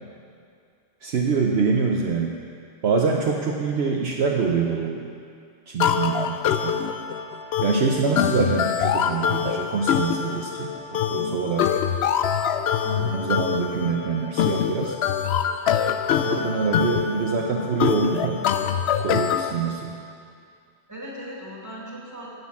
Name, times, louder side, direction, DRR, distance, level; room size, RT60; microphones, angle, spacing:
voice 1, 1.0-2.4 2.8-5.1 5.7-6.8 7.6-11.7 12.9-14.9 16.2-18.7 19.0-20.0, right 5 dB, 65° right, 0 dB, 1.0 m, -25 dB
sound 1, 5.8-19.5, left 8 dB, 65° left, 0.8 m, -24 dB
voice 2, 12.8-13.2 20.9-22.3, right 1 dB, 15° right, -5 dB, 2.5 m, -37 dB
11.0 x 8.0 x 7.1 m, 2.4 s
omnidirectional pair, 1.2 m